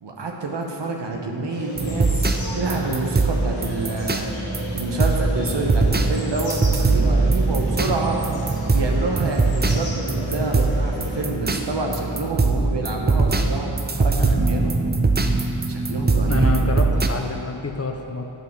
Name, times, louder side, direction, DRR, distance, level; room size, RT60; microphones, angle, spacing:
voice 1, 0.0-4.2 4.7-8.2 8.6-14.8 15.7-16.5, right 2 dB, 60° right, 1 dB, 1.2 m, -28 dB
sound 1, 1.5-11.2, left 1 dB, 50° left, 1.7 m, -36 dB
sound 2, 1.8-17.1, right 3 dB, 20° right, 0.5 m, -22 dB
voice 2, 16.3-18.3, left 3 dB, 30° left, 3 dB, 0.7 m, -28 dB
9.1 x 5.6 x 4.6 m, 2.7 s
cardioid pair, 55°, 48 cm